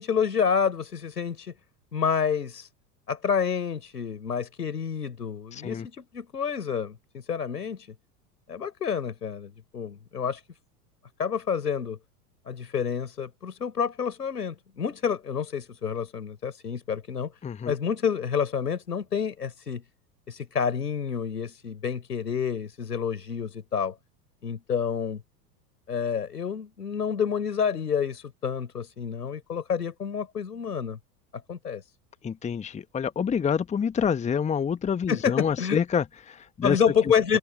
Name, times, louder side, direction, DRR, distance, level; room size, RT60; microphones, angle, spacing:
voice 1, 0.0-1.5 1.9-2.7 3.1-7.9 8.5-10.4 11.2-12.0 12.5-17.3 17.7-19.8 20.3-24.0 24.4-25.2 25.9-31.0 31.3-31.8 35.1-35.8 36.6-37.4, left 7 dB, 75° left, 5.4 m, -28 dB
voice 2, 5.5-5.9 17.4-17.7 32.2-36.8 37.3-37.4, left 7 dB, 15° left, 1.2 m, -27 dB
figure-of-eight pair, 85°, 48 cm